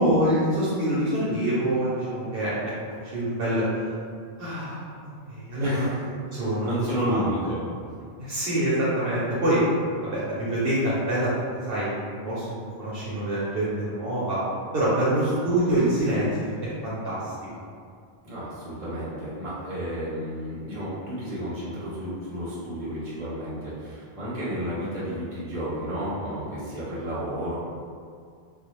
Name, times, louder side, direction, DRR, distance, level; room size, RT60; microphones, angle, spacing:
voice 1, 0.0-2.7 3.0-3.9 4.4-5.9 6.3-6.7 7.1-7.2 8.2-9.6 10.0-11.3 11.7-12.5 12.8-14.4 14.7-17.3, right 1 dB, 65° right, -9 dB, 0.8 m, -25 dB
voice 2, 5.6-6.0 6.4-7.6 18.2-27.6, equal, 35° right, -9 dB, 0.8 m, -31 dB
2.3 x 2.0 x 2.9 m, 2.2 s
omnidirectional pair, 1.1 m